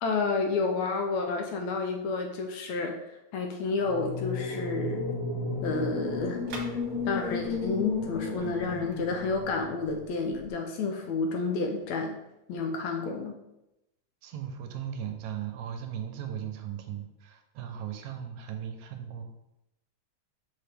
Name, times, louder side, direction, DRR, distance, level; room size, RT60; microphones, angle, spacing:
voice 1, 0.0-3.0 3.3-5.2 5.6-6.4 7.1-12.2 12.5-13.4, left 4 dB, 80° left, 4 dB, 1.8 m, -30 dB
sound 1, 3.8-9.9, left 3 dB, 35° left, 1.8 m, -34 dB
sound 2, 5.5-10.5, right 3 dB, 55° right, 1.7 m, -49 dB
voice 2, 14.2-19.3, right 9 dB, 80° right, 5 dB, 1.9 m, -37 dB
6.4 x 4.7 x 3.4 m, 0.88 s
omnidirectional pair, 3.5 m